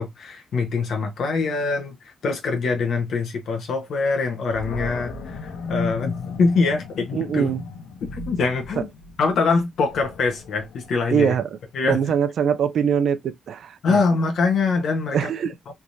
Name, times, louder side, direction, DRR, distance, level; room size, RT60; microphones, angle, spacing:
voice 1, 0.0-7.5 8.1-8.9 9.2-11.4 11.7-12.0 13.8-15.2 15.7-15.8, left 4 dB, 60° left, 1.1 m, -24 dB
Animal, 4.5-11.6, left 4 dB, 85° left, 0.8 m, -35 dB
voice 2, 7.1-7.6 8.8-8.9 11.1-11.6 11.8-14.0 15.1-15.5, right 7 dB, 60° right, 0.4 m, -23 dB
3.5 x 3.0 x 2.6 m
wide cardioid pair, 155°, 0 cm